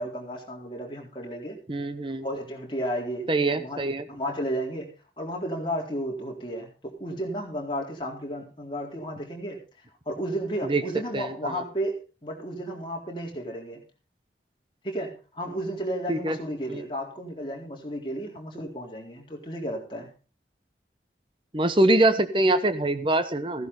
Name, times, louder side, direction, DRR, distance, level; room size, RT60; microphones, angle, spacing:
voice 1, 0.0-1.6 2.2-3.8 4.1-9.6 10.1-12.0 12.2-13.8 14.8-20.1, equal, 25° left, 0 dB, 3.9 m, -33 dB
voice 2, 1.7-2.2 3.3-4.0 10.6-10.8 11.1-11.6 16.1-16.4 16.7-16.8 21.5-23.7, right 2 dB, 30° right, 10 dB, 1.1 m, -24 dB
16.0 x 11.0 x 4.0 m, 0.34 s
head